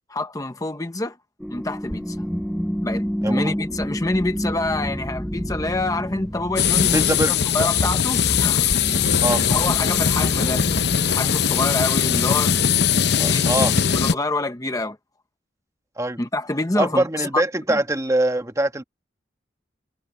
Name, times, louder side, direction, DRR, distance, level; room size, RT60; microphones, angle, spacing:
voice 1, 0.1-1.2 1.5-2.2 2.8-8.7 9.2-12.6 13.2-15.0 16.2-17.3 17.7-17.8, left 2 dB, 20° left, 0.8 m, -27 dB
sound 1, 1.4-11.0, equal, ahead, 1.1 m, -29 dB
sound 2, 6.6-14.1, left 7 dB, 60° left, 0.7 m, -20 dB
voice 2, 6.9-7.7 9.2-9.4 13.2-13.7 16.0-16.2 16.8-18.8, right 1 dB, 15° right, 1.3 m, -23 dB
head